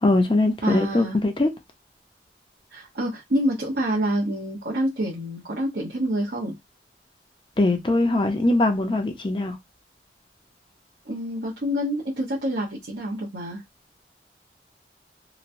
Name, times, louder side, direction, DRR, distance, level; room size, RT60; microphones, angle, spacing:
voice 1, 0.0-1.5 7.6-9.5, left 2 dB, 30° left, 0.6 m, -21 dB
voice 2, 0.6-1.2 2.7-6.5 11.1-13.6, right 1 dB, 70° right, 0.9 m, -27 dB
3.0 x 2.1 x 2.6 m
head